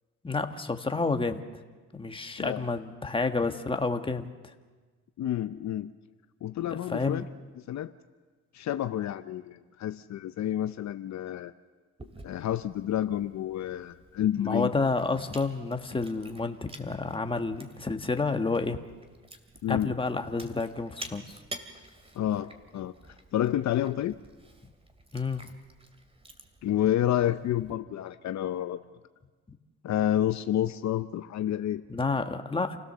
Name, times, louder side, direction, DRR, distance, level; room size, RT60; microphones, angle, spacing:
voice 1, 0.2-1.4 1.9-4.5 6.6-7.2 14.4-18.8 19.7-21.4 25.1-25.4 31.9-32.8, left 3 dB, 15° left, 6 dB, 1.5 m, -30 dB
voice 2, 5.2-5.9 6.4-7.2 7.6-7.9 8.5-11.5 12.2-14.7 19.6-19.9 22.1-22.9 23.3-24.2 26.6-28.8 29.8-31.8, left 11 dB, 65° left, 10 dB, 0.7 m, -29 dB
Chewing mastication, 12.0-27.7, right 1 dB, 20° right, 2.4 m, -50 dB
28.5 x 16.5 x 6.9 m, 1.4 s
cardioid pair, 90°, 30 cm